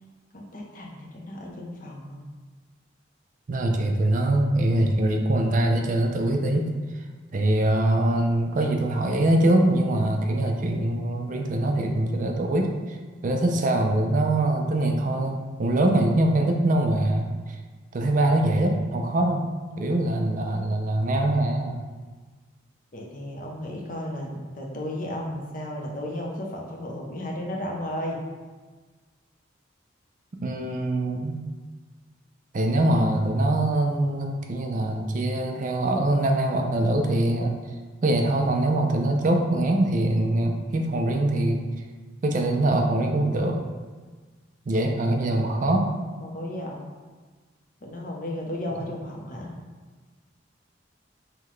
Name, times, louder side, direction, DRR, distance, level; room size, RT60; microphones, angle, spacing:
voice 1, 0.3-2.2 22.9-28.2 46.2-46.8 47.8-49.5, left 1 dB, 45° left, 0 dB, 0.6 m, -34 dB
voice 2, 3.5-6.7 7.3-13.0 13.2-17.3 17.9-19.5 19.8-21.8 30.4-31.5 32.5-37.5 38.0-41.6 42.2-43.6 44.7-45.9, right 1 dB, 45° right, 3 dB, 0.4 m, -23 dB
5.6 x 2.2 x 3.1 m, 1.4 s
head